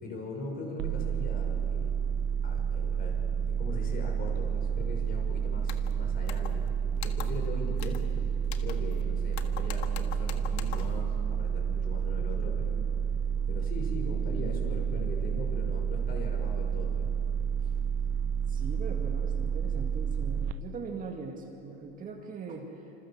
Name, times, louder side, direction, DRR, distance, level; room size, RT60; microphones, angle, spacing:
voice 1, 0.0-1.9 2.4-6.7 7.0-8.3 8.6-12.8 13.5-17.1 17.6-17.8, left 2 dB, 30° left, 2 dB, 6.1 m, -40 dB
sound 1, 0.8-20.5, right 7 dB, 45° right, 0.6 m, -30 dB
sound 2, 5.6-5.9 6.3-6.7 7.0-7.5 7.8-8.1 8.4-9.0 9.3-11.0, left 11 dB, 90° left, 1.6 m, -43 dB
voice 2, 18.5-22.9, right 4 dB, 25° right, 1 dB, 2.2 m, -41 dB
27.5 x 27.0 x 7.4 m, 2.9 s
supercardioid pair, 155°, 31 cm